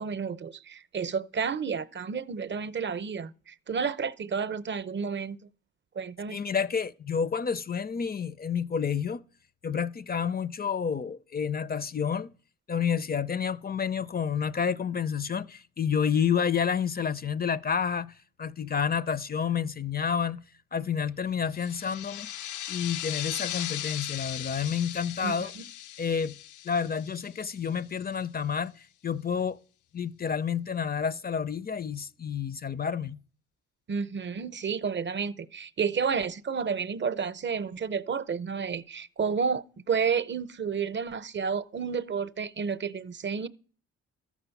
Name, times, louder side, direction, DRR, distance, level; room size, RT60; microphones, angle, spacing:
voice 1, 0.0-5.4 6.0-6.4 25.2-25.7 33.9-43.5, right 6 dB, 40° right, 0.7 m, -31 dB
voice 2, 6.3-9.2 9.6-12.3 12.7-20.4 20.7-22.3 22.7-25.5 26.0-26.4 26.6-29.6 29.9-33.2, left 7 dB, 30° left, 0.5 m, -29 dB
sound 1, 21.5-27.8, left 12 dB, 75° left, 0.7 m, -38 dB
13.0 x 6.0 x 7.0 m
cardioid pair, 90°, 30 cm